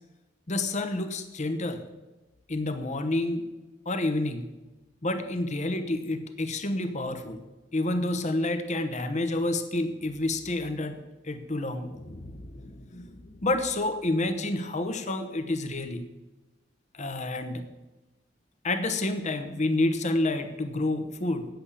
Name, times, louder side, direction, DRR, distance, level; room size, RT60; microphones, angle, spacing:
voice 1, 0.5-1.8 2.5-3.5 3.9-4.5 5.0-7.4 7.7-11.0 11.2-16.0 16.9-17.6 18.6-21.5, left 2 dB, 40° left, 9 dB, 1.0 m, -29 dB
8.5 x 7.9 x 8.3 m, 1.1 s
head